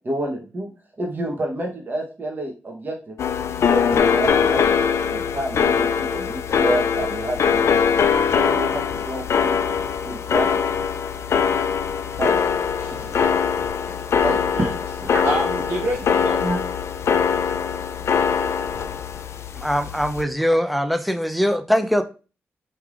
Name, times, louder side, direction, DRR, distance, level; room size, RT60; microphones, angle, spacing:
voice 1, 0.0-0.7 1.0-3.2 3.6-4.8 5.1-7.8 8.4-9.6 10.0-10.6 12.2-12.4 14.1-14.2 15.0-15.2 16.4-16.6, right 1 dB, 40° right, 1 dB, 1.0 m, -29 dB
sound 1, 3.2-20.2, left 7 dB, 70° left, 0.3 m, -22 dB
voice 2, 12.8-13.4 13.8-14.7 15.2-16.4, right 1 dB, 65° right, -7 dB, 1.4 m, -28 dB
voice 3, 19.6-22.0, equal, ahead, 8 dB, 0.5 m, -21 dB
4.4 x 3.4 x 2.5 m, 0.34 s
cardioid pair, 60°, 5 cm